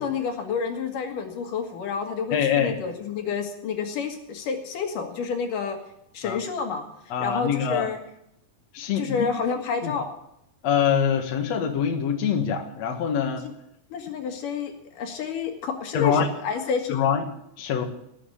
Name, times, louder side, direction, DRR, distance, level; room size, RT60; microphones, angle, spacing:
voice 1, 0.0-5.8 6.1-6.9 7.2-8.0 9.0-10.1 13.4-13.5 13.9-17.0, left 6 dB, 75° left, 4 dB, 3.3 m, -29 dB
voice 2, 2.3-2.8 6.2-6.4 7.1-7.9 8.7-9.3 9.8-9.9 10.6-13.5 15.9-16.3 16.9-17.2 17.6-17.8, left 7 dB, 55° left, 3 dB, 2.7 m, -24 dB
19.0 x 7.9 x 8.4 m, 0.78 s
omnidirectional pair, 3.8 m